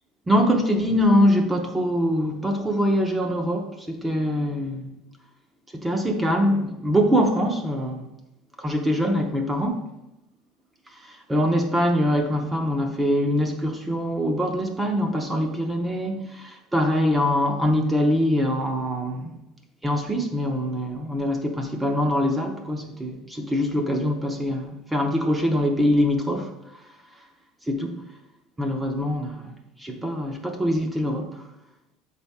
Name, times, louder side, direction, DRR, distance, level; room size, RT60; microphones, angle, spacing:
voice 1, 0.3-4.9 5.7-8.1 8.6-9.8 11.0-19.3 19.8-26.5 27.7-28.0 28.6-29.5 29.8-31.4, equal, 10° right, 3 dB, 0.7 m, -23 dB
6.9 x 4.1 x 3.5 m, 0.90 s
cardioid pair, 140°, 0 cm